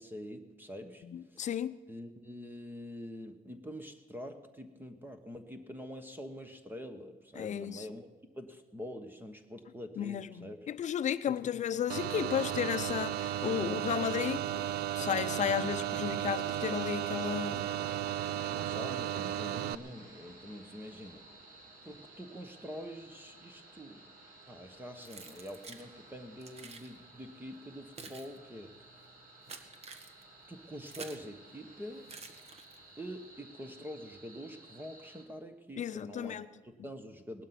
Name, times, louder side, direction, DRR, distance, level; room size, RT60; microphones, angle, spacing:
voice 1, 0.0-1.6 1.9-8.1 8.4-10.7 11.3-11.5 18.5-21.2 21.8-24.1 24.5-29.1 30.5-32.1 33.0-37.4, equal, 10° right, 1.2 m, -46 dB
voice 2, 1.1-1.8 7.4-7.8 10.0-14.7 14.9-17.7 35.8-36.5, left 9 dB, 45° left, 0.7 m, -34 dB
sound 1, 11.9-19.7, right 11 dB, 70° right, 0.6 m, -34 dB
sound 2, 16.4-35.2, right 2 dB, 55° right, 3.4 m, -56 dB
Keys jangling, 25.0-25.9 26.4-26.9 27.6-31.3 32.0-33.0, right 4 dB, 40° right, 1.6 m, -49 dB
18.0 x 12.0 x 5.9 m
cardioid pair, 110°, 17 cm